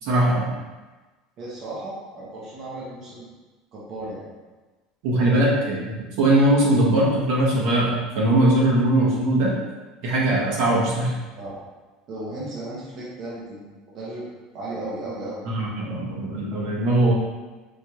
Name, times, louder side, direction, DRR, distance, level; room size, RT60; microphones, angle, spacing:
voice 1, 0.0-0.5 5.0-5.9 6.2-9.5 10.0-11.1 15.4-17.1, right 1 dB, 65° right, -4 dB, 1.0 m, -20 dB
voice 2, 1.4-3.3 3.7-4.3 11.3-11.6 12.1-14.3 14.5-15.5, right 2 dB, 40° right, -7 dB, 0.8 m, -35 dB
4.5 x 2.9 x 2.3 m, 1.2 s
cardioid pair, 150°, 0 cm